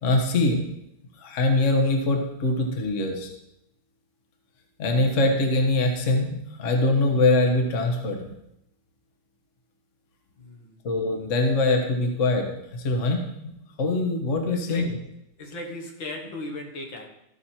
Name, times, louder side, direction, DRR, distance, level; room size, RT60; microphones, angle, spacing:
voice 1, 0.0-0.6 1.2-3.3 4.8-8.3 10.8-12.5 12.7-13.5 13.8-14.9, left 2 dB, 40° left, 3 dB, 1.4 m, -23 dB
voice 2, 10.4-10.8 14.5-15.0 15.4-17.1, left 2 dB, 65° left, 2 dB, 2.1 m, -37 dB
14.0 x 6.2 x 4.4 m, 0.83 s
omnidirectional pair, 2.2 m